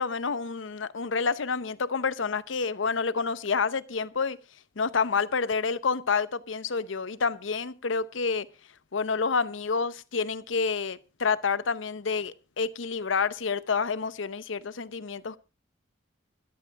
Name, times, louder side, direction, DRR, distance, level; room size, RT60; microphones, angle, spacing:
voice 1, 0.0-4.4 4.8-8.5 8.9-15.4, left 5 dB, 80° left, 0.8 m, -28 dB
14.0 x 12.0 x 4.6 m
head